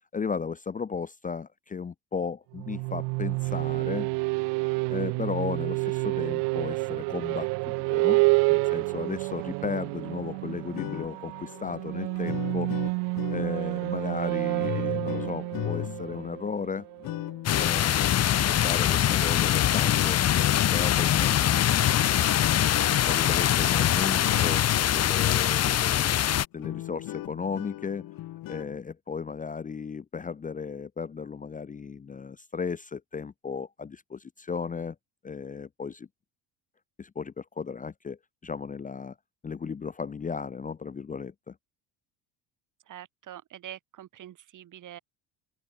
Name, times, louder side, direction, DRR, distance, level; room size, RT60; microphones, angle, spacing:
voice 1, 0.1-4.1 4.9-8.2 8.5-12.7 13.3-16.9 17.5-18.0 18.4-20.2 20.7-21.4 23.1-24.7 24.9-26.2 26.5-28.1 28.5-35.0 35.2-36.1 37.0-39.1 39.4-41.5, left 5 dB, 20° left, 0.9 m, -35 dB
sound 1, 2.5-17.2, right 29 dB, 80° right, 1.2 m, -29 dB
sound 2, 10.6-25.8 26.2-26.3 26.6-28.8, left 15 dB, 55° left, 1.8 m, -37 dB
sound 3, 17.5-26.5, left 11 dB, 40° left, 1.2 m, -23 dB
voice 2, 42.9-45.0, right 12 dB, 50° right, 3.9 m, -44 dB
open air
cardioid pair, 120°, 40 cm